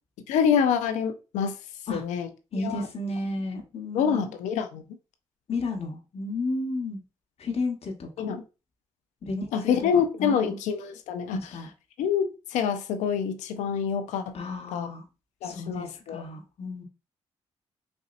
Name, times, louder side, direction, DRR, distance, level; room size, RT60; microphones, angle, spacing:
voice 1, 0.3-1.5 1.9-2.3 2.6-2.8 3.9-4.8 8.2-8.4 9.5-11.4 12.0-14.3 14.7-14.9 15.4-16.2, left 7 dB, 85° left, 0.5 m, -26 dB
voice 2, 2.5-4.2 5.5-7.0 7.4-8.3 9.2-10.6 11.3-11.7 14.3-15.0 15.4-16.8, left 2 dB, 60° left, 1.2 m, -33 dB
4.2 x 2.7 x 2.4 m
supercardioid pair, 55°, 12 cm